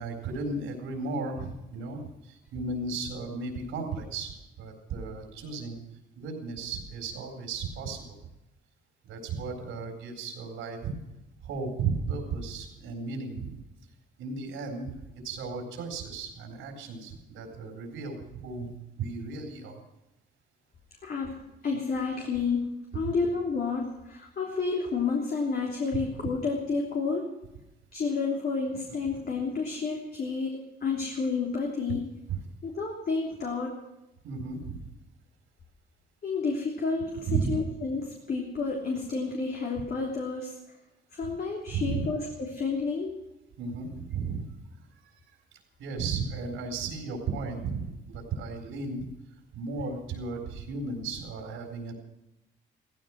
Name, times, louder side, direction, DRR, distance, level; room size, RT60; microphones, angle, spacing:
voice 1, 0.0-5.8 6.2-8.2 9.0-10.9 11.4-13.6 14.2-15.0 15.2-19.8 23.0-23.1 25.9-26.3 32.3-32.4 34.2-34.9 37.3-37.6 39.8-39.9 41.3-41.4 41.7-42.1 43.6-44.5 44.9-45.2 45.8-49.0 49.5-51.9, right 4 dB, 90° right, 2 dB, 4.0 m, -35 dB
voice 2, 21.0-22.7 22.9-27.3 27.9-32.0 32.6-33.7 36.2-40.5 41.1-43.2, left 4 dB, 50° left, -1 dB, 3.3 m, -30 dB
16.0 x 15.0 x 6.0 m, 0.91 s
cardioid pair, 90°, 20 cm